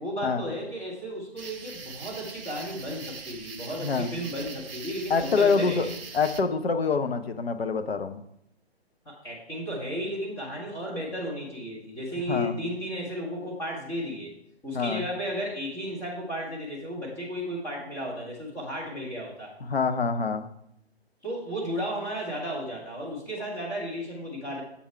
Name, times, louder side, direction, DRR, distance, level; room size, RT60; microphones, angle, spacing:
voice 1, 0.0-5.9 9.0-14.3 14.6-19.5 21.2-24.6, equal, 5° left, -7 dB, 1.1 m, -34 dB
sound 1, 1.4-6.4, right 5 dB, 60° right, 0.8 m, -42 dB
voice 2, 3.8-4.1 5.1-5.9 6.1-8.2 12.3-12.6 14.7-15.0 19.7-20.5, left 5 dB, 65° left, 8 dB, 0.8 m, -25 dB
7.1 x 5.1 x 4.5 m, 0.74 s
figure-of-eight pair, 140°, 33 cm